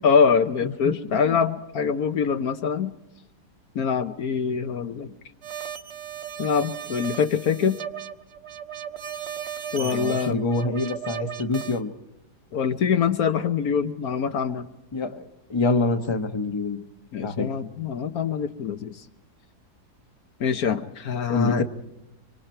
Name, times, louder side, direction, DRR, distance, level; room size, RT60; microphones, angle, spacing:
voice 1, 0.0-2.9 3.7-5.1 6.4-7.8 9.7-10.4 12.5-14.7 17.1-19.0 20.4-21.6, left 6 dB, 65° left, 8 dB, 1.4 m, -24 dB
voice 2, 0.6-0.9 1.2-1.4 9.8-11.9 14.9-15.2 15.5-16.8 17.2-17.5 21.3-21.6, left 3 dB, 20° left, 7 dB, 1.1 m, -26 dB
sound 1, 5.4-11.8, right 9 dB, 45° right, 1.1 m, -36 dB
25.5 x 25.0 x 4.5 m, 0.90 s
omnidirectional pair, 1.8 m